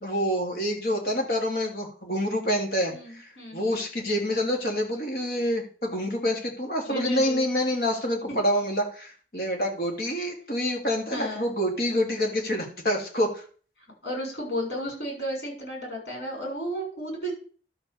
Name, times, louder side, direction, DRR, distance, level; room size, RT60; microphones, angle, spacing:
voice 1, 0.0-3.3 3.5-13.4, equal, 60° left, 1 dB, 3.1 m, -27 dB
voice 2, 2.9-3.9 6.9-7.4 7.7-7.9 11.1-11.5 14.0-17.3, equal, 85° left, 0 dB, 7.1 m, -33 dB
12.0 x 5.1 x 7.2 m, 0.42 s
head